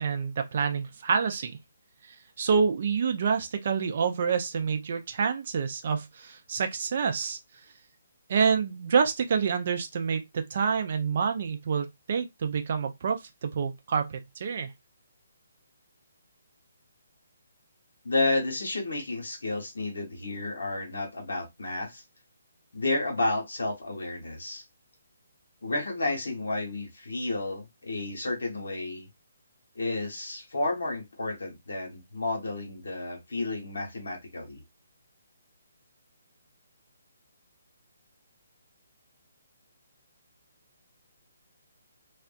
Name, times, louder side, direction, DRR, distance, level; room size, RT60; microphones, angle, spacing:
voice 1, 0.0-1.6 2.0-7.4 8.3-14.7, right 6 dB, 45° right, 0.5 m, -27 dB
voice 2, 18.0-22.0 22.7-24.6 25.6-29.1 29.7-34.6, left 2 dB, 65° left, 0.9 m, -31 dB
2.5 x 2.1 x 2.4 m
figure-of-eight pair, 135°, 0 cm